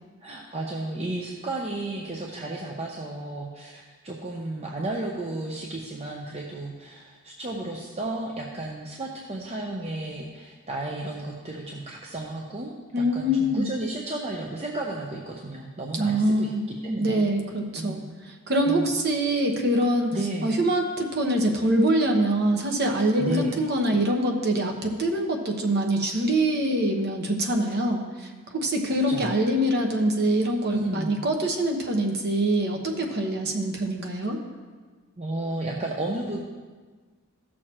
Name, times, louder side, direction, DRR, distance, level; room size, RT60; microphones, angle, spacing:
voice 1, 0.2-16.5 16.8-17.3 17.7-18.1 18.6-18.9 20.1-20.5 23.2-23.6 29.1-29.4 30.7-31.2 35.2-36.4, right 2 dB, 30° right, -2 dB, 0.7 m, -33 dB
voice 2, 12.9-13.7 15.9-16.6 17.0-18.0 18.5-20.1 20.4-28.0 28.5-34.4, right 1 dB, 45° right, 2 dB, 1.1 m, -24 dB
14.5 x 6.5 x 3.0 m, 1.4 s
head